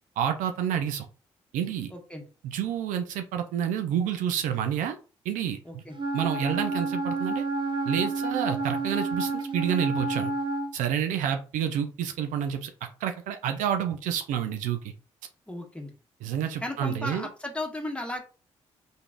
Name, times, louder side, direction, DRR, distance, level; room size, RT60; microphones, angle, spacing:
voice 1, 0.2-1.1 1.5-1.9 2.4-5.0 5.2-5.8 6.1-7.4 7.9-10.3 10.7-12.7 13.0-14.9 16.2-17.3, right 9 dB, 75° right, 7 dB, 0.4 m, -29 dB
voice 2, 1.9-2.2 5.6-6.0 15.5-15.9 16.6-18.2, left 1 dB, 10° left, 2 dB, 1.4 m, -35 dB
Wind instrument woodwind instrument, 6.0-10.8, right 3 dB, 35° right, 0.7 m, -29 dB
3.8 x 3.5 x 2.4 m, 0.35 s
hypercardioid pair, 45°, 13 cm